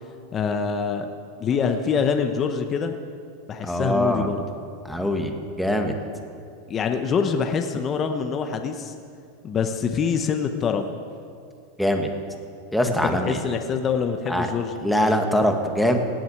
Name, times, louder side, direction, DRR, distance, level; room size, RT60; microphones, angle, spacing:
voice 1, 0.3-1.1 1.4-3.0 3.5-4.4 6.7-8.9 9.4-10.9 12.9-14.7, left 6 dB, 25° left, 6 dB, 0.9 m, -25 dB
voice 2, 3.6-4.3 4.8-5.9 11.8-12.1 12.7-13.4 14.3-14.5 14.8-16.0, equal, ahead, 3 dB, 1.6 m, -22 dB
18.0 x 7.8 x 8.6 m, 2.4 s
supercardioid pair, 135°, 0 cm